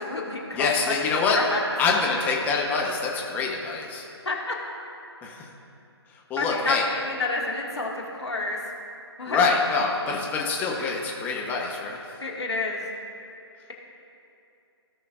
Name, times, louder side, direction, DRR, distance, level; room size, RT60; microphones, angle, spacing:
voice 1, 0.0-0.7 1.3-1.6 4.3-4.5 6.4-8.6 9.2-9.5 12.2-12.8, left 3 dB, 75° left, -2 dB, 2.0 m, -29 dB
voice 2, 0.5-1.4 1.8-4.1 5.2-5.5 6.1-6.8 9.3-12.0, left 4 dB, 10° left, -2 dB, 1.0 m, -25 dB
17.0 x 5.7 x 2.5 m, 2.7 s
figure-of-eight pair, 140°, 14 cm